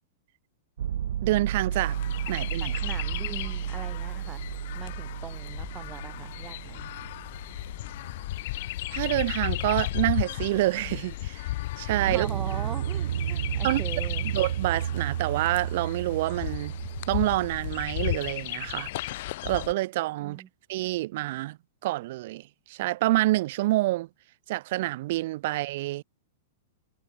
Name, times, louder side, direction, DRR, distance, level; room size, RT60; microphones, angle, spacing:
sound 1, 0.8-8.6 11.9-18.0, right 10 dB, 80° right, 0.4 m, -32 dB
voice 1, 1.2-2.0 2.3-2.8 8.9-11.4 11.8-12.3 13.6-13.8 14.3-16.7 17.1-18.9 19.4-20.4 20.7-21.6 21.8-24.1 24.5-26.0, right 18 dB, 45° right, 1.0 m, -27 dB
Chirp tweet, 1.7-19.7, left 17 dB, 50° left, 1.1 m, -35 dB
voice 2, 2.6-4.4 4.7-6.9 12.0-14.3 20.2-20.5, right 8 dB, 15° right, 0.5 m, -41 dB
supercardioid pair, 170°, 0 cm